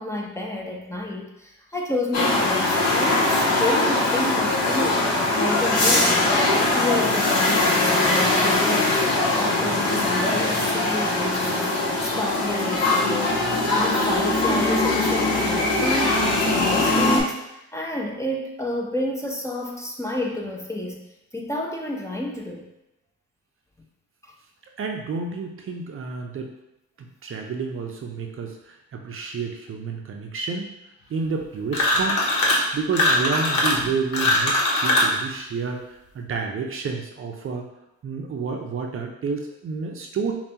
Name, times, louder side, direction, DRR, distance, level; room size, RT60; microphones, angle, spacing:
voice 1, 0.0-6.4 6.7-9.0 9.3-13.4 13.8-21.0 21.3-22.7 24.2-24.3, left 1 dB, 10° left, -1 dB, 0.6 m, -30 dB
sound 1, 2.1-17.2, left 2 dB, 60° left, 1.2 m, -21 dB
voice 2, 24.8-26.5 27.0-30.7 31.1-32.2 32.7-35.8 36.1-37.7 38.0-40.3, right 5 dB, 45° right, 2 dB, 0.6 m, -30 dB
sound 2, 31.7-32.7 32.9-35.2, left 1 dB, 85° left, 0.9 m, -21 dB
5.5 x 2.3 x 2.8 m, 0.88 s
cardioid pair, 90°, 30 cm